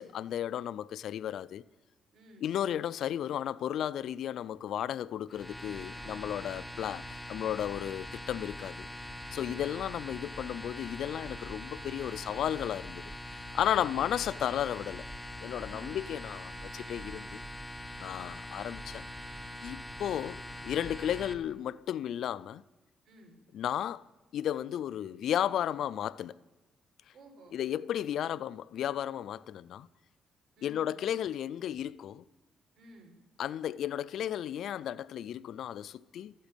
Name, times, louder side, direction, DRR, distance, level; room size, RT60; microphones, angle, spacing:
voice 1, 0.0-1.6 2.4-8.9 9.3-13.0 13.3-15.0 15.4-17.4 18.0-19.0 19.6-22.6 23.5-24.0 24.3-26.3 27.5-29.9 30.6-32.2 33.4-36.3, left 10 dB, 70° left, 0.4 m, -34 dB
voice 2, 2.1-2.5 6.0-6.5 9.3-9.7 13.7-14.6 15.6-16.1 18.0-18.4 23.0-23.4 27.1-27.6 30.5-30.9 32.7-33.2, right 1 dB, 55° right, 4.6 m, -55 dB
sound 1, 5.3-21.3, left 1 dB, 5° left, 1.2 m, -43 dB
14.0 x 8.5 x 9.0 m
cardioid pair, 90°, 0 cm